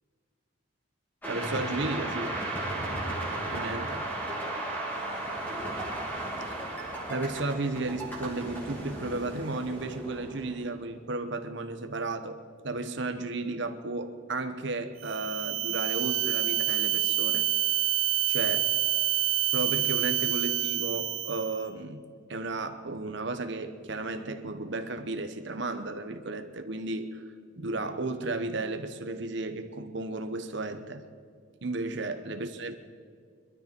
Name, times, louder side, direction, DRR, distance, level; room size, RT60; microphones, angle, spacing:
sound 1, 1.2-10.9, right 1 dB, 10° left, 3.0 m, -35 dB
voice 1, 1.3-2.4 3.5-4.1 6.6-6.8 7.1-12.4 12.6-17.5 18.3-18.7 19.5-22.0 22.3-27.2 27.6-31.0 31.6-32.7, right 2 dB, 60° right, 1.0 m, -34 dB
sound 2, 15.0-21.6, right 13 dB, 90° right, 1.1 m, -27 dB
22.0 x 12.5 x 4.5 m
head